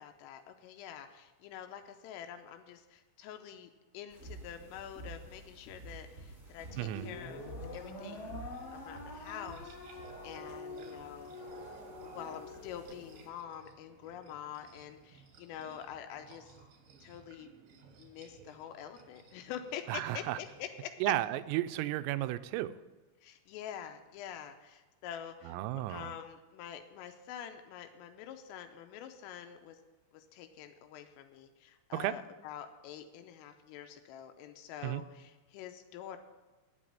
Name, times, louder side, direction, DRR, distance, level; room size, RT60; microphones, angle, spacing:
voice 1, 0.0-7.4 7.7-8.4 8.7-11.4 12.0-16.5 17.0-17.5 18.0-21.1 23.2-29.8 30.1-36.2, left 9 dB, 85° left, 7 dB, 3.2 m, -46 dB
sound 1, 4.1-13.3, right 2 dB, 5° right, 1.4 m, -51 dB
sound 2, 6.7-13.2, left 3 dB, 55° left, 1.7 m, -46 dB
voice 2, 6.8-7.1 19.9-20.4 21.0-22.7 25.5-26.1 31.9-32.1 34.8-35.0, right 15 dB, 90° right, 13 dB, 3.3 m, -33 dB
sound 3, 7.7-20.9, right 5 dB, 70° right, 2.1 m, -57 dB
9.2 x 8.5 x 8.8 m, 1.2 s
omnidirectional pair, 5.9 m